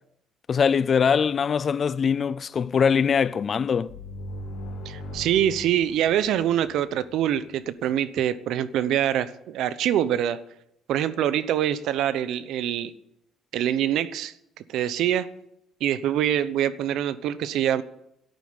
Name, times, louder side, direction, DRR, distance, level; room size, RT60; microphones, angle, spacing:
voice 1, 0.5-3.9, left 6 dB, 40° left, 0.5 m, -22 dB
sound 1, 3.9-7.4, equal, 70° left, 4.8 m, -39 dB
voice 2, 4.8-10.4 10.9-12.9 13.5-14.3 14.7-15.3 15.8-17.8, right 10 dB, 75° right, 0.9 m, -24 dB
12.0 x 9.1 x 9.8 m
cardioid pair, 130°, 0 cm